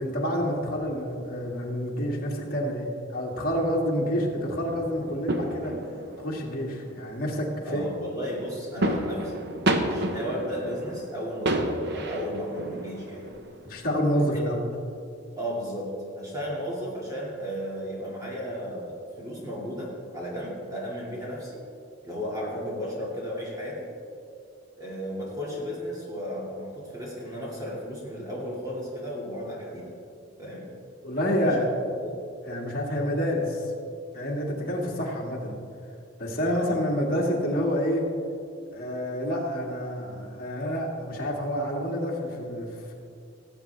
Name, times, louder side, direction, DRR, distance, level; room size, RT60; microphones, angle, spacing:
voice 1, 0.0-5.8 6.2-7.9 13.6-14.6 31.0-31.7 32.5-33.7 34.1-35.6 36.2-38.1 38.7-42.9, equal, 45° left, -3 dB, 2.1 m, -28 dB
sound 1, 4.2-13.8, right 1 dB, 50° right, 0.9 m, -32 dB
voice 2, 7.6-9.5 9.8-13.2 14.1-14.4 15.4-21.6 22.0-23.9 24.8-30.0 30.4-30.7 31.3-31.7 32.0-32.1 36.4-36.7, equal, 15° right, -5 dB, 2.2 m, -34 dB
18.5 x 8.3 x 3.4 m, 2.5 s
head